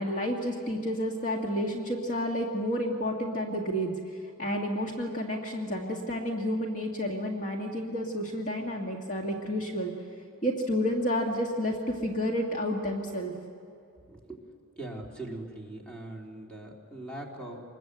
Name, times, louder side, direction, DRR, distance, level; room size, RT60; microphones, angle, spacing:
voice 1, 0.0-3.9 4.4-9.9 10.4-13.3, equal, 40° left, 1 dB, 1.9 m, -30 dB
voice 2, 14.1-14.4 14.8-17.6, right 1 dB, 5° left, -1 dB, 3.4 m, -41 dB
26.0 x 21.0 x 8.0 m, 2.6 s
head